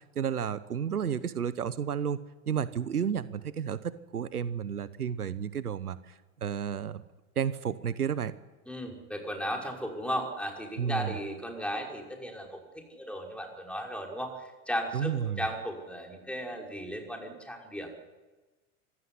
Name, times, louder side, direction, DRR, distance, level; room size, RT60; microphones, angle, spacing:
voice 1, 0.0-2.2 2.5-6.1 6.4-7.0 7.4-8.3 10.8-11.1 14.9-15.4, right 8 dB, 85° right, 16 dB, 1.0 m, -32 dB
voice 2, 8.7-17.9, equal, 5° left, 1 dB, 5.7 m, -36 dB
26.0 x 16.0 x 10.0 m, 1.2 s
figure-of-eight pair, 85°, 44 cm